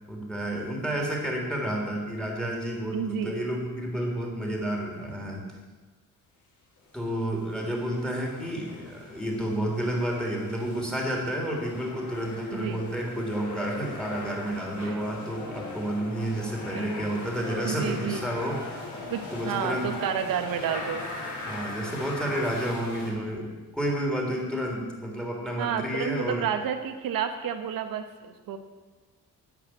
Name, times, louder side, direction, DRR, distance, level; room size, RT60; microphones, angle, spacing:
voice 1, 0.1-5.4 6.9-18.8 19.3-19.9 21.5-26.5, right 1 dB, ahead, -1 dB, 3.5 m, -30 dB
voice 2, 2.9-3.4 12.5-12.8 14.8-15.0 16.7-16.9 17.6-18.2 19.1-21.0 25.6-28.6, right 8 dB, 90° right, 7 dB, 1.3 m, -30 dB
sound 1, 7.0-23.1, left 2 dB, 60° left, 4.3 m, -39 dB
11.0 x 9.8 x 8.8 m, 1.4 s
cardioid pair, 140°, 33 cm